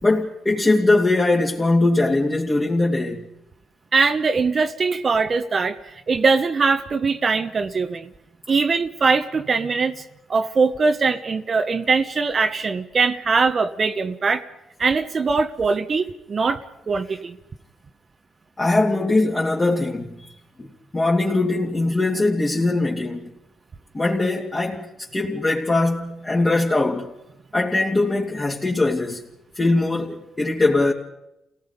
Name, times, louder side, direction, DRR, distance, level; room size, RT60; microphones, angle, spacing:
voice 1, 0.0-3.3 18.6-20.2 20.6-20.7 20.9-23.3 23.9-27.1 27.5-29.2 29.6-30.9, left 2 dB, 25° left, 2.8 m, -21 dB
voice 2, 3.9-8.1 8.5-10.0 10.3-14.4 14.8-17.4, right 4 dB, 40° right, 1.1 m, -21 dB
29.5 x 17.5 x 5.3 m
cardioid pair, 90°, 0 cm